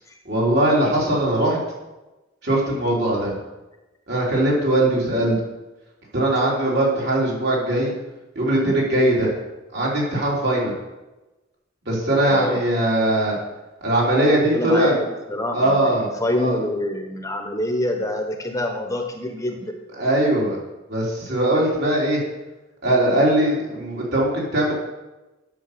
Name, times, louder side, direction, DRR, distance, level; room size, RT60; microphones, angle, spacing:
voice 1, 0.3-1.6 2.4-3.4 4.1-5.3 6.1-7.9 8.4-9.3 9.7-10.7 11.9-13.4 13.8-15.0 15.5-16.1 16.4-16.6 20.0-20.6 20.9-22.2 22.8-24.7, right 1 dB, 60° right, -4 dB, 3.6 m, -20 dB
voice 2, 5.1-5.4 12.3-12.6 14.5-15.9 16.2-19.8, left 1 dB, 15° left, 4 dB, 0.9 m, -26 dB
9.5 x 6.5 x 6.8 m, 1.1 s
head